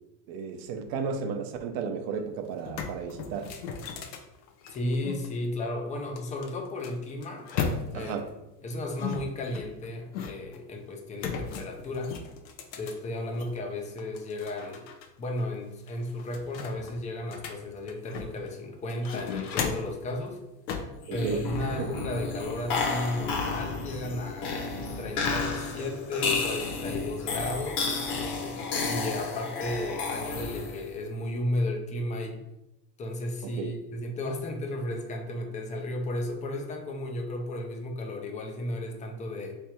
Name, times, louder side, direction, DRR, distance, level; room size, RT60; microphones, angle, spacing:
voice 1, 0.3-3.5 7.9-8.3 21.1-21.9 33.4-33.8, right 5 dB, 45° right, 6 dB, 0.7 m, -34 dB
sound 1, 2.1-2.2 2.5-5.3 6.2-8.2 9.0-10.6 11.2-13.6 14.0-15.1 15.4-15.5 15.9-18.5 18.9-20.0 20.7-21.0, left 6 dB, 85° left, 0.8 m, -36 dB
voice 2, 4.7-7.5 7.9-8.3 8.6-12.1 12.8-14.9 15.2-20.4 21.1-32.4 33.0-39.6, left 1 dB, 15° left, 3 dB, 0.4 m, -34 dB
sound 2, 21.0-30.9, left 4 dB, 45° left, 1.1 m, -32 dB
3.5 x 3.4 x 4.4 m, 0.94 s
supercardioid pair, 120°, 50 cm